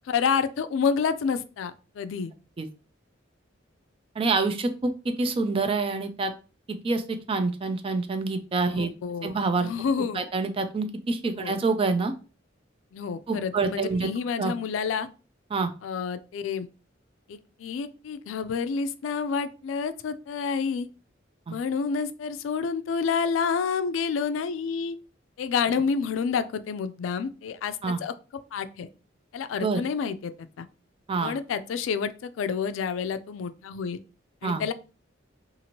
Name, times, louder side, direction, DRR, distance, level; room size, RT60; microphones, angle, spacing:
voice 1, 0.0-2.3 8.7-10.3 11.4-11.6 12.9-15.1 15.8-16.7 17.3-20.9 21.5-25.0 25.4-28.1 28.5-28.9 29.3-30.7 31.2-34.0 34.4-34.7, left 6 dB, 85° left, 0.3 m, -29 dB
voice 2, 4.2-6.3 6.7-8.9 9.2-9.7 10.1-12.1 13.3-14.1 14.4-14.5 15.5-15.7 21.5-21.6 27.8-28.0 29.6-29.8 31.1-31.3 34.4-34.6, right 3 dB, 30° right, 0.3 m, -26 dB
2.7 x 2.5 x 2.9 m
head